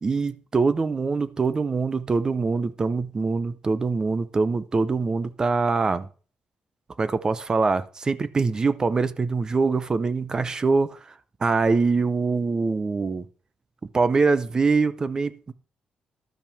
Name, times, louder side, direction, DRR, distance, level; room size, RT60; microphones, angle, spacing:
voice 1, 0.0-6.1 7.0-11.0 11.4-13.3 13.9-15.5, right 4 dB, 30° right, 0.7 m, -23 dB
12.5 x 5.7 x 7.0 m
cardioid pair, 140°, 3 cm